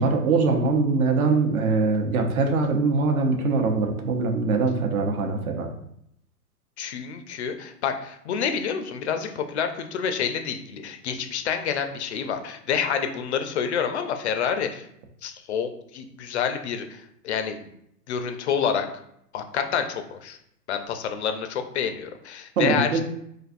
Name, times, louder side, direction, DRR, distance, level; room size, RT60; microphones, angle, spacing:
voice 1, 0.0-5.7 22.6-23.0, right 4 dB, 60° right, 3 dB, 0.9 m, -22 dB
voice 2, 6.8-14.9 15.2-17.6 18.1-18.9 19.3-20.4 20.7-23.0, left 7 dB, 45° left, 7 dB, 0.5 m, -28 dB
4.1 x 2.6 x 2.4 m, 0.74 s
hypercardioid pair, 125°, 49 cm